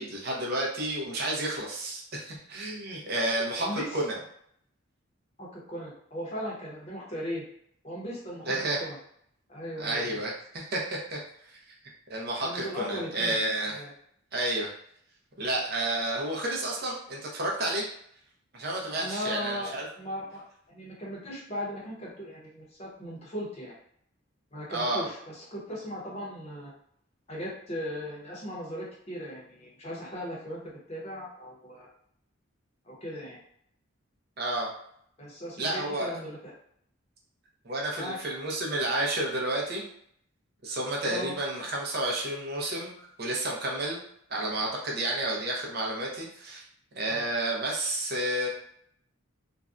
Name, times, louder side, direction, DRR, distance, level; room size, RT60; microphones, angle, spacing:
voice 1, 0.0-4.2 8.5-8.8 9.8-11.2 11.5-11.6 12.1-13.7 14.3-14.7 15.4-17.8 18.5-19.9 24.7-25.1 34.4-34.7 35.6-36.1 37.6-39.8 40.6-44.0 44.3-46.6 46.9-48.5, right 1 dB, 50° right, -1 dB, 0.6 m, -31 dB
voice 2, 3.6-4.0 5.4-7.4 7.8-9.0 9.5-10.2 12.4-13.4 13.7-13.9 18.9-23.7 24.5-26.7 27.3-30.6 30.9-31.9 32.8-33.4 35.2-36.5 38.0-38.2 41.1-41.3 47.1-47.2, equal, 30° left, -4 dB, 0.7 m, -38 dB
2.5 x 2.1 x 2.4 m, 0.69 s
head